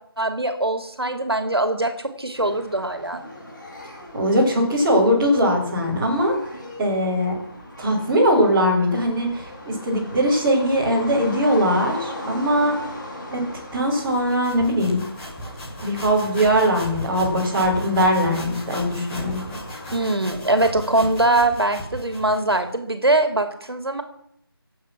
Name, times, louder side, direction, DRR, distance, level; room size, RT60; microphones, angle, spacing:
voice 1, 0.2-3.2 19.9-24.0, right 2 dB, 80° right, 8 dB, 2.6 m, -22 dB
sound 1, 2.3-20.1, left 1 dB, 50° left, 6.1 m, -39 dB
voice 2, 4.1-7.4 7.8-12.8 13.3-15.0 15.8-19.4, equal, 10° right, -7 dB, 4.4 m, -21 dB
sound 2, 14.1-22.7, equal, 5° left, 1.6 m, -36 dB
24.0 x 8.7 x 6.0 m, 0.72 s
figure-of-eight pair, 165°, 13 cm